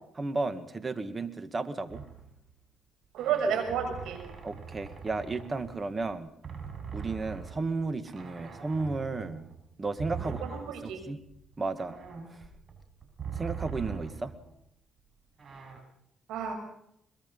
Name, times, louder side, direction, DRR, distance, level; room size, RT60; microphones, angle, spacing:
voice 1, 0.2-2.0 4.4-6.3 6.9-9.5 9.8-10.4 10.8-11.2 11.6-12.0 13.4-14.3, right 3 dB, 30° right, 11 dB, 1.9 m, -33 dB
sound 1, 1.9-2.5 3.2-6.1 6.4-14.6 15.4-15.8, right 6 dB, 50° right, 6.3 m, -42 dB
voice 2, 3.1-4.2 10.4-11.0 16.3-16.6, right 7 dB, 90° right, 5 dB, 5.9 m, -31 dB
22.5 x 21.5 x 5.5 m, 0.75 s
cardioid pair, 90°, 0 cm